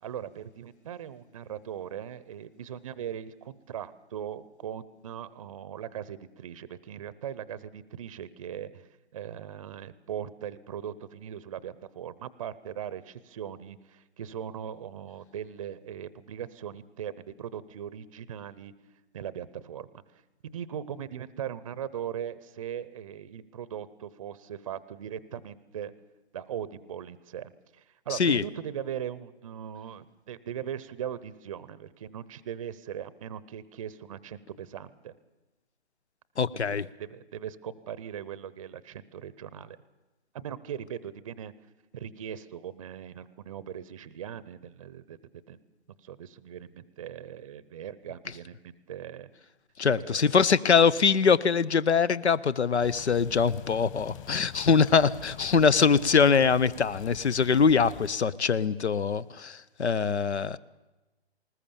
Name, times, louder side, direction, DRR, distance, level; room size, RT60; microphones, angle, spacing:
voice 1, 0.0-18.7 19.1-25.9 26.3-35.2 36.6-39.8 40.3-41.5 41.9-45.2 45.5-45.6 46.0-49.3 49.8-50.5, right 9 dB, 30° right, 18 dB, 0.7 m, -39 dB
voice 2, 28.1-28.4 36.4-36.8 49.8-60.6, left 6 dB, 85° left, 20 dB, 0.9 m, -23 dB
sound 1, 52.8-58.1, left 11 dB, 30° left, 1.8 m, -45 dB
20.0 x 20.0 x 7.1 m, 1.1 s
hypercardioid pair, 150°, 33 cm